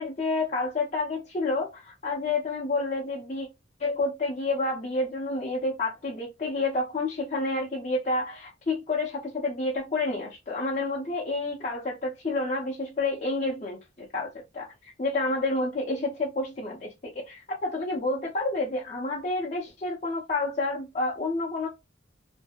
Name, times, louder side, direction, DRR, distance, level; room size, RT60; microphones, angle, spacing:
voice 1, 0.0-3.5 3.8-21.7, left 2 dB, 40° left, 0.5 m, -29 dB
2.6 x 2.4 x 2.2 m
head